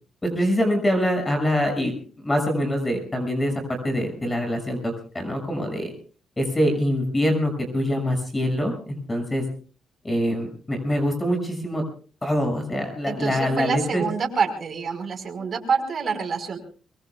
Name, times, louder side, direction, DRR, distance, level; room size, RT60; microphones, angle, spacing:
voice 1, 0.2-1.9 2.2-5.9 6.4-9.4 10.0-11.8 12.2-14.0, equal, 20° left, 5 dB, 6.4 m, -24 dB
voice 2, 13.1-16.6, right 5 dB, 45° right, 4 dB, 5.0 m, -27 dB
24.0 x 23.5 x 2.4 m, 0.41 s
cardioid pair, 90°, 0 cm